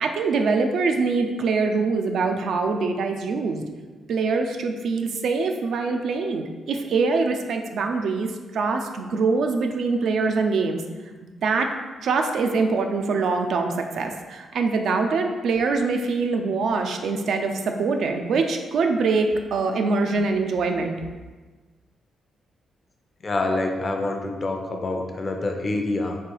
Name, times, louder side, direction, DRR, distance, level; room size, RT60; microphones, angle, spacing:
voice 1, 0.0-3.6 4.1-10.8 11.4-11.7 12.0-21.0, right 4 dB, 70° right, 4 dB, 0.4 m, -24 dB
voice 2, 23.2-26.2, left 2 dB, 35° left, 3 dB, 0.5 m, -26 dB
3.2 x 2.9 x 4.5 m, 1.3 s
cardioid pair, 100°, 0 cm